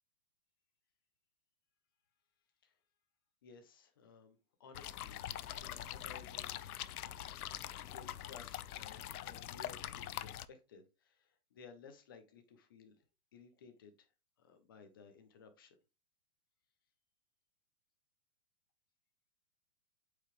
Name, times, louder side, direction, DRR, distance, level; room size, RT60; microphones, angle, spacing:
voice 1, 3.4-5.2 5.6-6.6 7.8-13.0 13.3-14.1 14.4-15.8, left 5 dB, 15° left, 0.4 m, -58 dB
sound 1, 4.7-10.5, left 12 dB, 75° left, 0.7 m, -44 dB
8.1 x 4.8 x 3.0 m
hypercardioid pair, 165°, 45 cm